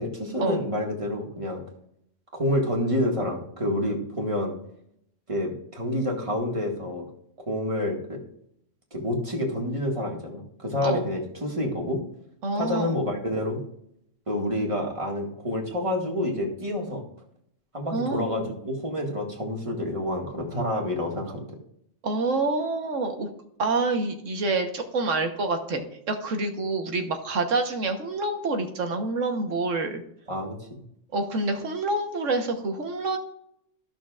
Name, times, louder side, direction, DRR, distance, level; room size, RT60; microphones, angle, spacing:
voice 1, 0.0-1.6 2.3-4.5 5.3-7.1 7.5-8.2 8.9-12.0 12.5-13.6 14.3-17.0 17.7-21.4 30.3-30.6, left 1 dB, 25° right, -1 dB, 1.9 m, -28 dB
voice 2, 12.4-13.0 17.9-18.3 22.0-23.3 23.6-30.0 31.1-33.2, right 3 dB, 85° right, 5 dB, 1.5 m, -27 dB
14.5 x 6.4 x 2.4 m, 0.73 s
omnidirectional pair, 1.3 m